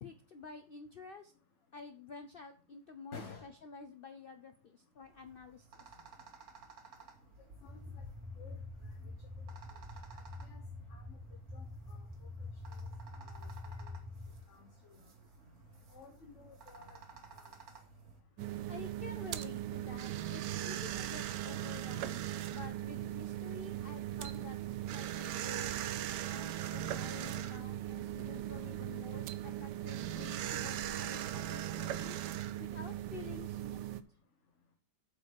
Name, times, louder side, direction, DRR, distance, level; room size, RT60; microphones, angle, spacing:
voice 1, 0.0-1.3 1.7-5.9 18.7-22.2 22.5-25.8 26.3-32.2 32.6-33.9, left 5 dB, 85° left, 8 dB, 0.5 m, -50 dB
voice 2, 3.1-3.5 7.6-8.0 8.4-8.6 10.1-10.2 10.5-10.6 10.9-11.2 11.5-12.0 13.2-13.5 14.5-14.6 14.9-15.0 15.9-17.0, left 5 dB, 45° left, 1 dB, 1.6 m, -52 dB
sound 1, 5.0-18.2, right 4 dB, 60° right, 1.9 m, -56 dB
sound 2, 7.7-14.4, left 2 dB, 20° right, 0.5 m, -46 dB
sound 3, 18.4-34.0, right 12 dB, 85° right, 1.3 m, -39 dB
8.2 x 4.8 x 6.6 m, 0.40 s
omnidirectional pair, 1.8 m